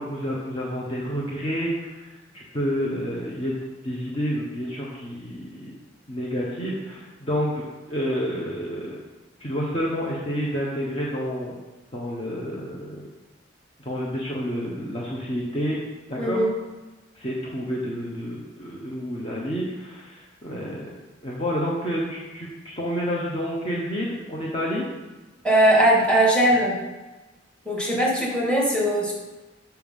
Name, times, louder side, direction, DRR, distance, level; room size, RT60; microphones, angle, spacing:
voice 1, 0.0-2.1 2.3-3.6 3.8-5.7 6.1-9.0 9.4-11.5 11.9-13.0 13.8-15.8 16.1-16.4 17.1-20.9 21.2-22.5 22.8-24.9, equal, 30° left, -4 dB, 1.2 m, -29 dB
voice 2, 16.2-16.5 25.4-26.8 27.7-29.1, right 1 dB, 5° left, -4 dB, 2.1 m, -20 dB
7.1 x 5.9 x 5.5 m, 1.2 s
head